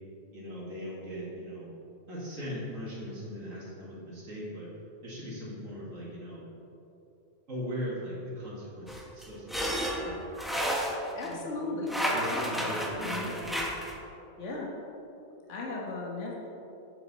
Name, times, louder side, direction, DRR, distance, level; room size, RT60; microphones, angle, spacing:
voice 1, 0.3-1.7 2.1-4.7 5.0-6.4 7.5-9.7 10.0-10.2 11.2-11.7 12.1-13.7, equal, 85° right, -7 dB, 2.4 m, -39 dB
sound 1, 8.9-11.3 11.9-14.0, equal, ahead, 0.7 m, -32 dB
voice 2, 11.1-13.7 14.4-14.7 15.5-16.5, left 2 dB, 70° left, -2 dB, 1.5 m, -36 dB
8.5 x 6.6 x 4.2 m, 2.9 s
omnidirectional pair, 1.3 m